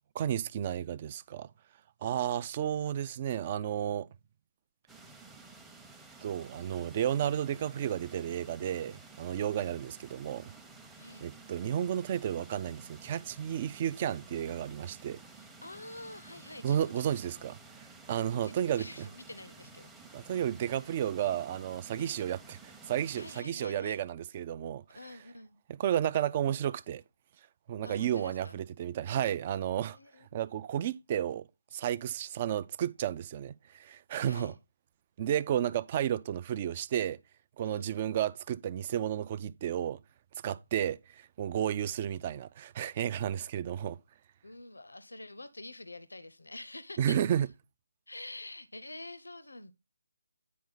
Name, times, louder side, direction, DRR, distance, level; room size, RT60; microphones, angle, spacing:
voice 1, 0.1-1.5 2.0-4.1 6.2-10.5 11.2-15.2 16.6-17.6 18.1-18.9 20.1-24.8 25.7-27.0 27.7-30.0 30.3-34.5 35.2-37.2 37.6-40.0 40.4-44.0 47.0-47.5, right 10 dB, 30° right, 0.4 m, -32 dB
sound 1, 4.9-23.4, right 3 dB, 5° right, 0.7 m, -53 dB
voice 2, 10.9-11.3 15.3-17.3 18.4-20.2 21.9-22.2 23.1-24.0 24.9-25.6 27.8-28.6 29.9-30.3 34.3-34.6 37.6-38.0 44.4-47.2 48.1-49.7, left 2 dB, 85° left, 0.6 m, -47 dB
9.4 x 4.3 x 3.9 m
figure-of-eight pair, 155°, 0 cm